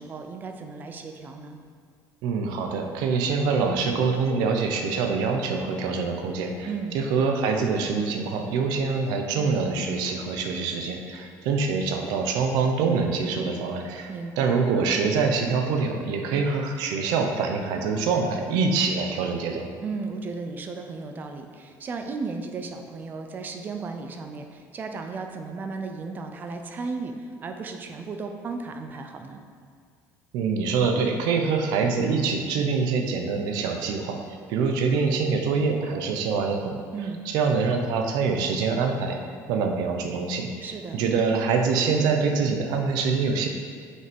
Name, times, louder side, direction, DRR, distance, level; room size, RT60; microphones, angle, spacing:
voice 1, 0.0-1.6 6.7-7.0 14.1-14.5 19.8-29.5 36.9-37.2 40.6-41.0, right 4 dB, 30° right, 5 dB, 0.5 m, -35 dB
voice 2, 2.2-14.1 14.4-19.7 30.3-34.2 34.5-36.8 37.3-39.2 39.5-43.5, right 4 dB, 80° right, 4 dB, 0.9 m, -25 dB
6.5 x 5.5 x 5.3 m, 2.1 s
cardioid pair, 165°, 7 cm